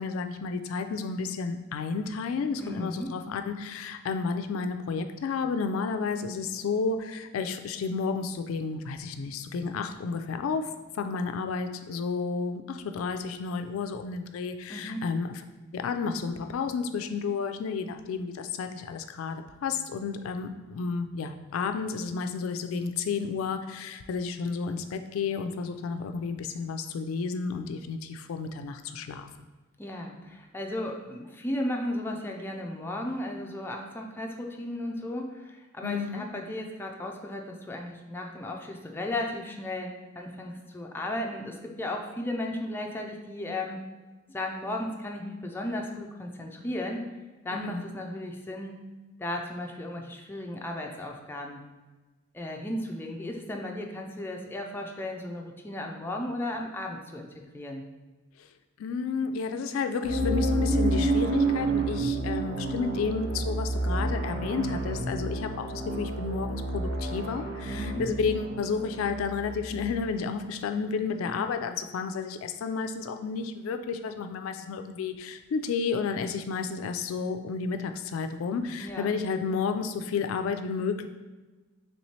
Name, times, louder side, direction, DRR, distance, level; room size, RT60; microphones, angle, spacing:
voice 1, 0.0-15.4 15.7-29.3 35.8-36.3 47.5-47.8 58.8-81.1, left 5 dB, 85° left, 8 dB, 0.3 m, -31 dB
voice 2, 2.6-3.1 14.7-15.1 29.8-43.8 44.3-47.0 47.4-48.8 49.2-51.6 52.3-57.8 67.7-68.0 78.8-79.1, left 1 dB, 10° left, 1 dB, 0.4 m, -35 dB
sound 1, 60.0-70.0, right 2 dB, 60° right, 0.6 m, -29 dB
3.2 x 3.0 x 4.2 m, 1.2 s
head